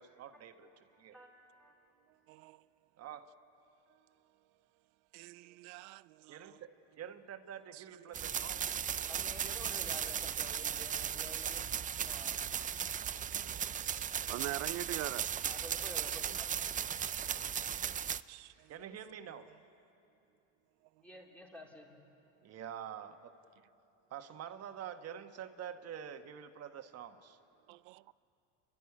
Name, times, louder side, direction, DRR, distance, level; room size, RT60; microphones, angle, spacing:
voice 1, 0.0-0.7 1.0-1.1 3.0-3.3 6.3-8.6 18.7-19.5 22.4-23.3 24.1-27.4, right 9 dB, 45° right, 1.3 m, -47 dB
voice 2, 0.6-1.9 9.1-12.4 15.5-16.5 17.3-17.6 21.0-22.0, equal, 5° left, 4.2 m, -52 dB
voice 3, 2.0-2.7 3.9-4.6 5.1-6.6 7.7-9.1 9.8-10.0 12.0-12.1 12.8-15.4 16.1-16.5 18.3-18.9 19.3-19.6 20.8-21.0 27.7-28.1, right 20 dB, 75° right, 0.6 m, -47 dB
sound 1, 8.1-18.2, right 8 dB, 25° right, 0.5 m, -37 dB
29.5 x 12.0 x 9.8 m
supercardioid pair, 105°, 34 cm